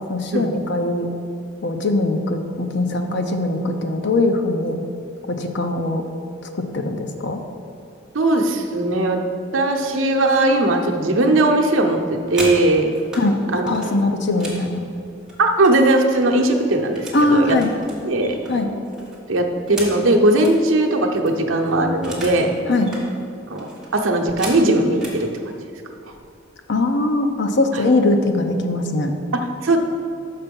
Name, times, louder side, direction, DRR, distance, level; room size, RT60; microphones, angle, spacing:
voice 1, 0.1-1.1 1.6-4.8 5.3-6.0 6.7-7.4 13.1-13.4 13.6-14.9 17.1-17.7 18.5-18.7 22.7-22.9 26.7-29.1, left 2 dB, 60° left, 5 dB, 0.7 m, -21 dB
voice 2, 8.1-9.2 9.5-12.9 13.5-13.9 15.4-17.6 18.0-18.4 19.3-22.6 23.5-25.3 27.7-27.8 29.6-29.8, right 2 dB, 75° right, 2 dB, 0.8 m, -18 dB
sound 1, 12.1-13.3 13.7-16.0 16.3-17.2 17.6-20.6 21.0-21.1 21.3-22.5 22.7-23.1 23.6-25.2 26.0-26.2 26.6-26.9 27.2-27.7, right 1 dB, 5° right, 1.4 m, -35 dB
6.7 x 5.8 x 5.3 m, 2.6 s
head